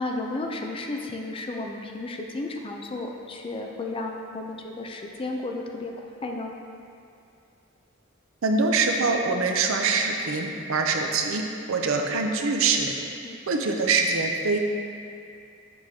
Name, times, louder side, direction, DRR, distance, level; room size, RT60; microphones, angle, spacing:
voice 1, 0.0-6.5 13.2-13.4, left 2 dB, 25° left, 2 dB, 0.4 m, -33 dB
voice 2, 8.4-11.4 11.7-12.9 13.5-14.7, right 4 dB, 70° right, 3 dB, 0.6 m, -24 dB
7.1 x 6.2 x 2.8 m, 2.5 s
head